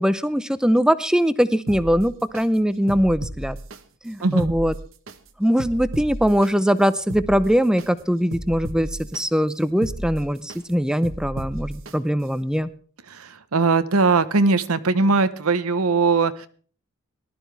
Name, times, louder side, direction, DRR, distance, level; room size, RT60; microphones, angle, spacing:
voice 1, 0.0-3.6 4.0-4.7 5.4-12.7, equal, 5° right, 14 dB, 0.6 m, -21 dB
sound 1, 1.7-2.4 2.9-3.8 4.2-5.2 5.6-6.5 7.0-7.9 8.3-9.2 9.7-10.6 11.0-11.9 12.4-12.5, right 1 dB, 65° right, 1.2 m, -33 dB
voice 2, 4.2-4.5 13.1-16.5, right 4 dB, 90° right, 12 dB, 1.0 m, -20 dB
19.5 x 12.5 x 3.4 m, 0.42 s
head